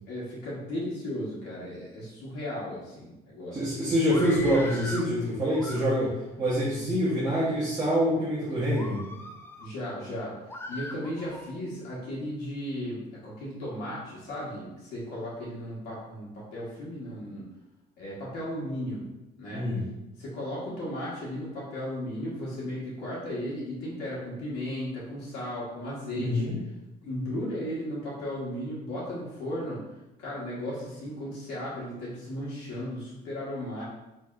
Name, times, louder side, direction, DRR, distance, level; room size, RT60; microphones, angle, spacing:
voice 1, 0.1-3.6 9.6-10.3 10.7-17.5 18.0-19.0 19.4-19.6 20.2-26.5 27.0-29.8 30.2-33.8, equal, 80° left, -7 dB, 1.2 m, -35 dB
voice 2, 3.5-9.1 19.5-19.8 26.2-26.6, equal, 20° right, -8 dB, 1.0 m, -26 dB
Screaming, 4.0-5.1 5.5-6.3 6.9-7.5 8.0-8.2 8.7-9.7 10.5-11.5, left 1 dB, 15° left, 0.4 m, -41 dB
4.1 x 3.1 x 2.4 m, 0.99 s
cardioid pair, 110°, 17 cm